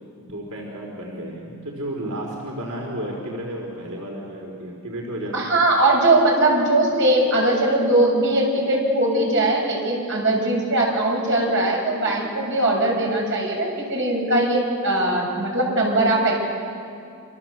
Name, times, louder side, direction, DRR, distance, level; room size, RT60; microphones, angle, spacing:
voice 1, 0.2-5.4, right 1 dB, 85° right, -1 dB, 4.5 m, -32 dB
voice 2, 5.3-16.4, right 2 dB, 55° right, -1 dB, 7.3 m, -20 dB
28.0 x 26.5 x 7.9 m, 2.4 s
head